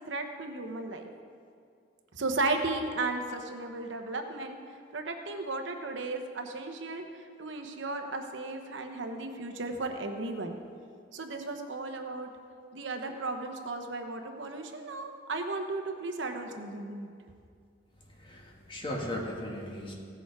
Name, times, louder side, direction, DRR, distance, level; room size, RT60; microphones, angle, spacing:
voice 1, 0.1-1.1 2.1-4.6 4.9-7.0 7.4-10.6 11.1-12.3 12.7-17.1, right 2 dB, 70° right, 5 dB, 1.0 m, -35 dB
voice 2, 18.1-19.9, left 1 dB, 30° left, -2 dB, 2.0 m, -37 dB
16.5 x 6.9 x 4.8 m, 2.3 s
head